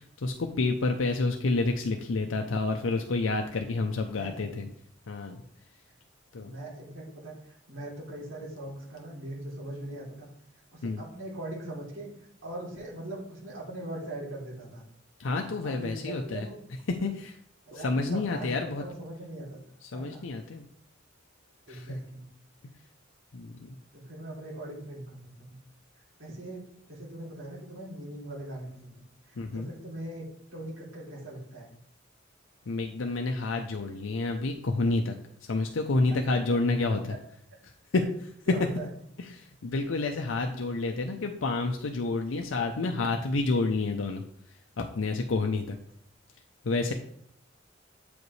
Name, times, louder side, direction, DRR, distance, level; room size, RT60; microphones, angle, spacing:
voice 1, 0.0-4.7 5.1-5.4 6.3-6.5 10.8-11.0 15.2-16.5 16.9-17.4 17.7-18.8 19.8-20.7 21.7-22.0 23.3-23.8 29.4-29.7 32.7-35.2 35.4-37.2 37.6-38.6 39.2-44.2 44.8-45.8 46.6-46.9, left 3 dB, 80° left, 3 dB, 0.6 m, -29 dB
voice 2, 4.1-4.6 6.3-10.3 10.7-12.1 12.4-14.8 15.6-16.6 17.7-19.6 19.9-20.2 21.7-22.3 23.9-25.6 25.9-28.9 29.2-31.7 38.5-38.9 40.9-41.0, right 1 dB, 80° right, -6 dB, 3.1 m, -41 dB
8.0 x 5.1 x 3.2 m, 0.67 s
head